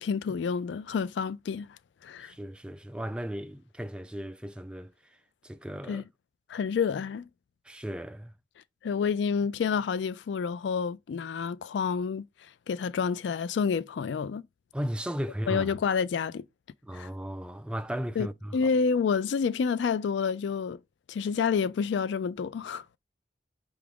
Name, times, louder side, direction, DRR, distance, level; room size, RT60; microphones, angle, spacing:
voice 1, 0.0-1.7 2.0-2.3 5.9-6.1 6.5-7.3 8.8-12.2 12.7-14.4 15.5-16.4 16.9-17.1 18.2-18.3 18.5-20.8 21.1-22.8, left 6 dB, 90° left, 0.3 m, -28 dB
voice 2, 2.2-4.9 5.4-6.0 7.7-8.4 14.7-15.7 16.8-18.7, equal, 5° right, 0.3 m, -36 dB
5.8 x 2.4 x 3.5 m
head